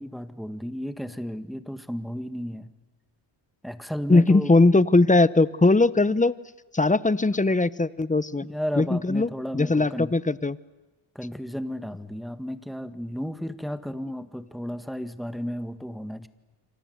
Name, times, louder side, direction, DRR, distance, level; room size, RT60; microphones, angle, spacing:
voice 1, 0.0-2.7 3.6-4.5 8.4-10.2 11.2-16.3, equal, ahead, 10 dB, 1.7 m, -33 dB
voice 2, 4.1-6.3 6.7-8.5 8.8-10.6, left 2 dB, 15° left, 17 dB, 0.9 m, -20 dB
27.5 x 26.0 x 8.1 m, 1.2 s
cardioid pair, 75°, 48 cm